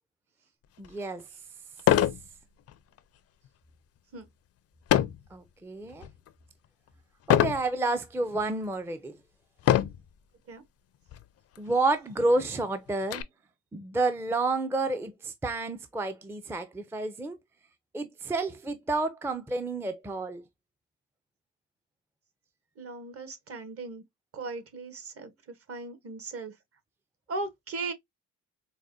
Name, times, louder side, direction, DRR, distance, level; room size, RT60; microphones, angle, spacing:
sound 1, 0.8-0.9 1.8-2.2 2.7-3.0 4.9-5.3 5.9-6.3 7.3-7.6 8.4-8.5 9.6-10.1 11.1-11.2 11.5-11.6 12.1-13.2, left 11 dB, 50° left, 0.4 m, -24 dB
voice 1, 0.8-1.2 5.3-6.1 7.3-9.2 11.6-13.2 13.7-17.4 17.9-20.4, right 2 dB, 10° right, 0.4 m, -30 dB
voice 2, 22.8-24.0 24.3-26.5 27.3-27.9, right 3 dB, 50° right, 1.1 m, -38 dB
4.7 x 2.1 x 2.5 m
cardioid pair, 90°, 30 cm